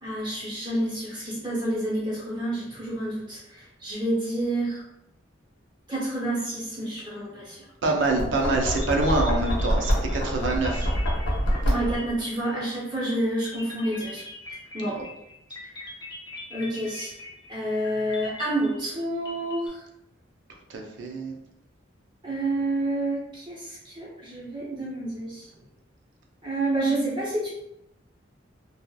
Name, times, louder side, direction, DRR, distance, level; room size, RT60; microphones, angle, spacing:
voice 1, 0.0-4.8 5.9-7.7 11.6-14.2 14.7-15.0 15.8-15.9 16.5-17.1 17.5-19.8 22.2-25.5 26.4-27.5, right 1 dB, 25° right, -7 dB, 0.6 m, -29 dB
voice 2, 7.8-10.9 14.8-15.0 20.7-21.3, right 2 dB, 70° right, 1 dB, 0.5 m, -26 dB
Knock, 8.1-12.2, equal, 75° left, 0.7 m, -26 dB
sound 1, 8.8-12.7 13.4-19.7, left 2 dB, 20° left, 0.5 m, -42 dB
2.7 x 2.3 x 2.2 m, 0.81 s
head